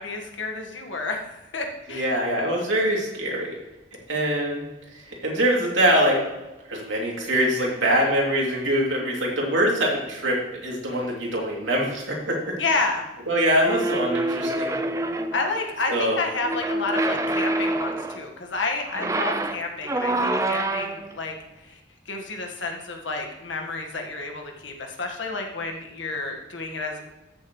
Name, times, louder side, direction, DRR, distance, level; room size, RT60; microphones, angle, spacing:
voice 1, 0.0-2.1 12.6-13.0 15.3-21.3 21.7-21.8 22.0-27.0, left 3 dB, 85° left, 2 dB, 1.6 m, -30 dB
voice 2, 1.9-3.6 4.1-4.6 5.2-6.2 6.7-12.6 13.3-14.7 15.9-16.2, equal, 85° right, -2 dB, 2.9 m, -23 dB
sound 1, 13.6-15.5 16.5-18.3 18.9-21.1, right 2 dB, 15° right, 0.4 m, -26 dB
13.5 x 6.9 x 3.2 m, 1.1 s
head